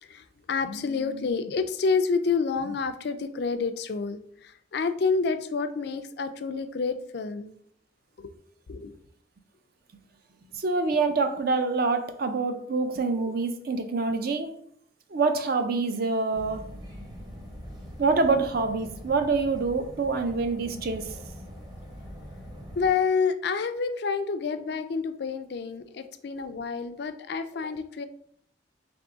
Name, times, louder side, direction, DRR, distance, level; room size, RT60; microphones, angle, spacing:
voice 1, 0.0-7.5 8.2-8.3 8.7-9.0 22.8-28.1, left 5 dB, 55° left, 9 dB, 0.4 m, -28 dB
voice 2, 10.5-14.6 15.1-16.7 18.0-21.1, right 3 dB, 50° right, 7 dB, 0.5 m, -26 dB
sound 1, 16.3-22.9, equal, 20° right, 0.7 m, -43 dB
3.5 x 3.4 x 3.8 m, 0.65 s
head